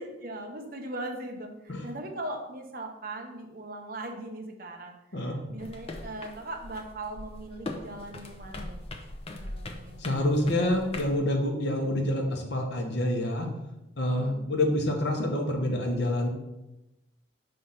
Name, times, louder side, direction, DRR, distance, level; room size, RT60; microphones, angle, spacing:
voice 1, 0.0-8.8 9.4-10.3 10.7-11.0 14.1-14.4, right 1 dB, 50° right, 3 dB, 0.9 m, -40 dB
sound 1, 5.6-11.2, left 2 dB, 30° left, 0.5 m, -41 dB
voice 2, 10.0-13.5 14.0-16.3, left 1 dB, 60° left, 2 dB, 1.0 m, -27 dB
5.4 x 3.3 x 5.6 m, 0.94 s
head